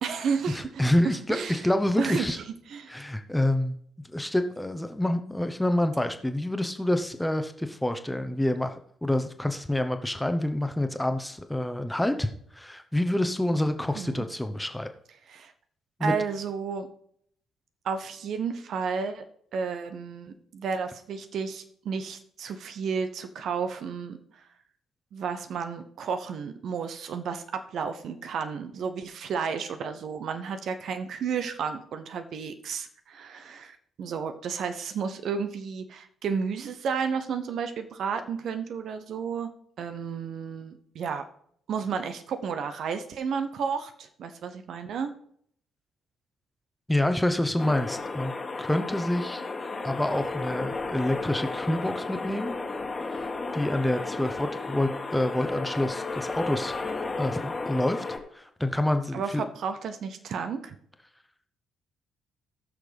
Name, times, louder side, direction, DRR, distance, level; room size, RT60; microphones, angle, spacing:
voice 1, 0.0-0.8 1.3-1.6 2.0-2.4 2.7-3.0 13.9-14.2 15.3-15.5 16.0-16.9 17.8-19.2 19.5-24.2 25.1-39.5 39.8-41.2 41.7-45.1 59.1-60.7, right 6 dB, 55° right, 9 dB, 0.7 m, -32 dB
voice 2, 0.5-2.4 2.9-3.8 4.0-14.9 16.0-16.1 46.9-48.3 48.6-49.4 49.8-52.6 53.1-53.2 53.5-56.8 57.2-58.0 58.3-59.4, left 1 dB, 5° left, 8 dB, 1.0 m, -27 dB
sound 1, 47.6-58.2, left 3 dB, 30° left, 1.6 m, -33 dB
18.5 x 6.4 x 3.4 m, 0.67 s
figure-of-eight pair, 45°, 0 cm